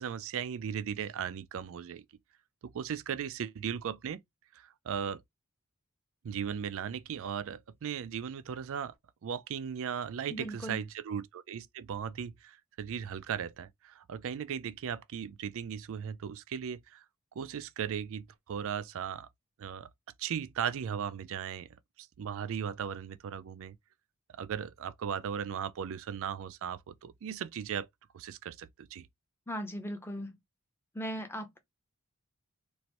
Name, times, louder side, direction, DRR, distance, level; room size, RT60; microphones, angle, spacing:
voice 1, 0.0-2.0 2.7-4.2 4.5-5.2 6.2-8.9 9.2-17.0 17.4-19.3 19.6-19.9 20.2-21.7 22.0-23.8 24.3-27.9 28.1-29.1, right 8 dB, 65° right, 0.4 m, -37 dB
voice 2, 10.3-10.8 29.5-30.4 30.9-31.6, equal, 10° left, 0.6 m, -38 dB
3.1 x 2.5 x 2.9 m
head